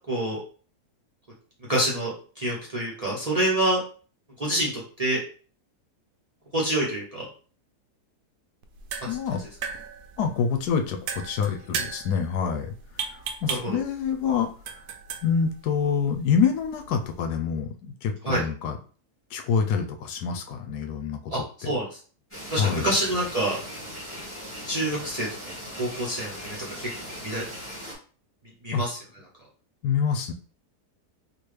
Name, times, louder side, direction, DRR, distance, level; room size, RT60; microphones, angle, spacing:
voice 1, 0.1-0.4 1.7-3.8 4.4-5.2 6.5-7.2 9.0-9.2 13.5-13.8 18.2-18.4 21.3-21.9 22.5-23.6 24.7-25.3 25.8-26.9 27.2-27.4 28.6-29.0, right 1 dB, 35° right, -4 dB, 0.6 m, -27 dB
sound 1, 8.6-17.2, right 6 dB, 75° right, 1.1 m, -38 dB
voice 2, 9.0-9.4 10.2-14.5 15.2-18.8 19.3-21.3 22.6-22.9 28.7-28.8 29.8-30.3, left 6 dB, 85° left, 5 dB, 1.2 m, -26 dB
sound 2, 22.3-28.0, equal, 10° left, 1.6 m, -39 dB
3.8 x 2.5 x 3.2 m, 0.40 s
omnidirectional pair, 1.7 m